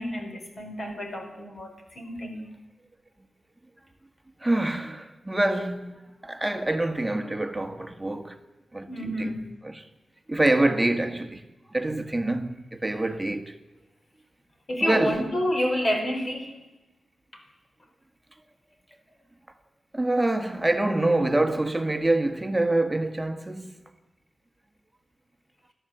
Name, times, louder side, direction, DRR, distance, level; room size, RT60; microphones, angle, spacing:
voice 1, 0.0-2.5 8.9-9.5 14.7-16.5 17.3-17.4, equal, 40° left, 4.7 m, -29 dB
voice 2, 4.4-8.4 8.7-9.4 9.6-9.8 10.3-11.5 11.7-13.6 14.8-15.2 19.9-23.7, right 2 dB, 10° right, 1.6 m, -26 dB
29.5 x 12.5 x 8.0 m
wide cardioid pair, 125°, 0 cm